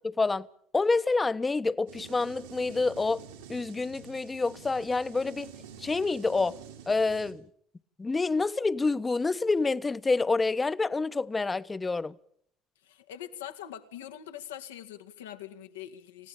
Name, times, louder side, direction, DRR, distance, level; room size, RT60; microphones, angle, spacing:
voice 1, 0.7-3.2 3.5-5.5 5.8-6.6 6.9-7.4 8.0-12.1, left 3 dB, 25° left, 1.1 m, -27 dB
sound 1, 1.9-7.3, right 7 dB, 85° right, 6.4 m, -48 dB
voice 2, 12.8-16.3, left 11 dB, 85° left, 2.1 m, -43 dB
29.5 x 17.0 x 7.3 m
hypercardioid pair, 65°, 0 cm